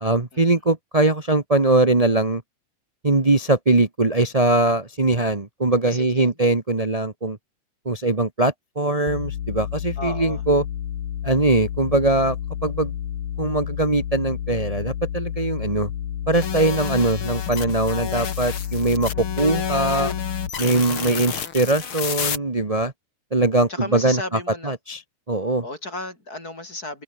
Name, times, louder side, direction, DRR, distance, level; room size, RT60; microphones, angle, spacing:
voice 1, 0.0-2.4 3.0-7.4 7.8-10.6 11.2-12.4 12.6-12.9 13.4-15.9 16.3-19.1 19.4-20.1 20.6-22.9 23.3-24.2 24.6-25.0 25.3-25.6, right 2 dB, 30° right, 0.6 m, -21 dB
voice 2, 5.8-6.4 10.0-10.4 23.7-24.7 25.6-27.0, left 2 dB, 25° left, 7.0 m, -34 dB
sound 1, 9.1-20.5, left 10 dB, 80° left, 3.5 m, -30 dB
sound 2, 16.3-22.4, left 7 dB, 45° left, 2.7 m, -30 dB
omnidirectional pair, 3.6 m